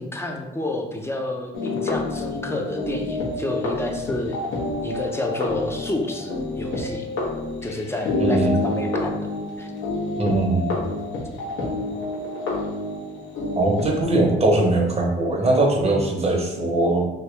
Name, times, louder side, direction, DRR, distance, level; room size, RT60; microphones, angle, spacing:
voice 1, 0.0-4.4 4.8-7.1 7.6-9.3 9.6-9.7, left 2 dB, 10° left, 2 dB, 0.5 m, -29 dB
sound 1, 1.5-14.0, left 2 dB, 80° left, 1.1 m, -28 dB
voice 2, 8.2-8.5 10.2-10.8 13.6-17.1, right 2 dB, 30° right, 0 dB, 0.8 m, -21 dB
2.9 x 2.7 x 3.2 m, 1.0 s
cardioid pair, 90°, 20 cm